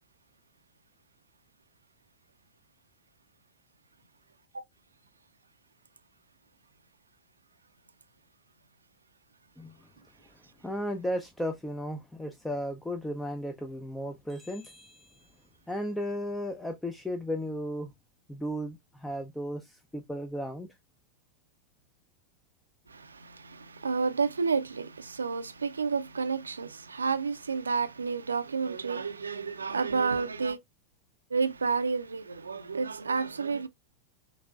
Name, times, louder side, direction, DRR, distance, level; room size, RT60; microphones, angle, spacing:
voice 1, 10.6-15.3 15.7-17.9 18.3-20.8, equal, 5° left, 0.6 m, -35 dB
voice 2, 22.9-30.6 31.3-33.7, right 5 dB, 75° right, 0.5 m, -30 dB
6.0 x 2.7 x 2.3 m
figure-of-eight pair, 90°, 0 cm